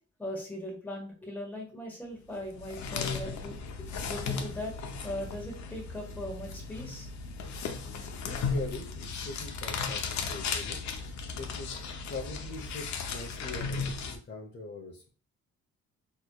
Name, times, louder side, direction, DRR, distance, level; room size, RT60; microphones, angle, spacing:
voice 1, 0.2-3.6 4.1-4.7 5.0-7.1, left 1 dB, 5° left, -1 dB, 1.5 m, -39 dB
sound 1, 2.4-14.2, left 5 dB, 65° left, 0.7 m, -36 dB
voice 2, 7.9-10.8 11.1-11.7 12.1-15.1, left 3 dB, 35° left, -1 dB, 0.8 m, -42 dB
4.2 x 3.1 x 2.3 m, 0.38 s
cardioid pair, 90°, 30 cm